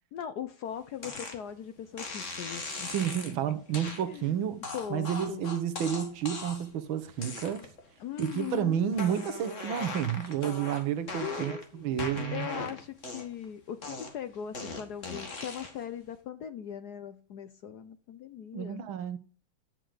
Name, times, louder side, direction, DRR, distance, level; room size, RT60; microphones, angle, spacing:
voice 1, 0.1-2.9 3.3-3.4 4.1-4.3 4.7-5.5 8.0-8.9 11.2-11.8 12.3-18.8, left 9 dB, 65° left, 1.0 m, -40 dB
sound 1, 1.0-1.4 2.0-3.3 3.7-4.0 4.6-6.7 7.2-7.8 8.2-8.6 8.9-11.6 12.0-13.4 13.8-15.8, left 3 dB, 40° left, 2.1 m, -39 dB
voice 2, 2.9-4.6 4.9-7.6 8.2-12.5 18.5-19.2, right 9 dB, 75° right, 1.7 m, -31 dB
10.5 x 7.7 x 4.9 m
omnidirectional pair, 2.3 m